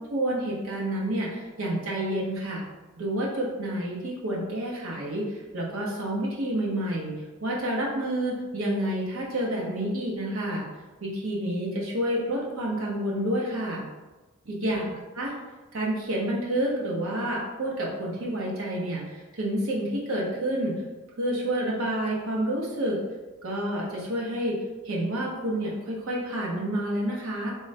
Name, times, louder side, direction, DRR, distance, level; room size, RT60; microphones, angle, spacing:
voice 1, 0.1-2.6 3.0-7.1 7.4-10.6 11.0-13.8 14.5-14.8 15.1-15.3 15.7-20.8 21.2-23.0 23.4-24.6 24.8-27.5, right 1 dB, 80° right, -3 dB, 0.8 m, -29 dB
3.5 x 2.1 x 2.6 m, 1.2 s
head